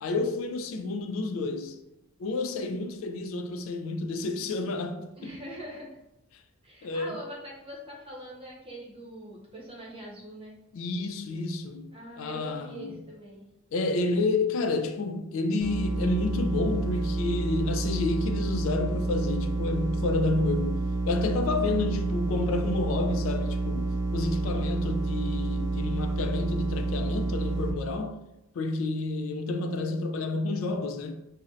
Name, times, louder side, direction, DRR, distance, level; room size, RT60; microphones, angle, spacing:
voice 1, 0.0-1.8 2.2-5.3 6.8-7.2 10.7-11.9 12.2-12.9 13.7-28.2 28.5-31.1, left 3 dB, 70° left, 0.3 m, -30 dB
voice 2, 2.6-3.0 5.1-6.0 6.6-10.6 11.9-13.5 21.5-21.9, right 1 dB, 25° right, 0.8 m, -43 dB
sound 1, 15.6-27.7, right 3 dB, 65° right, 0.6 m, -29 dB
2.6 x 2.1 x 3.7 m
head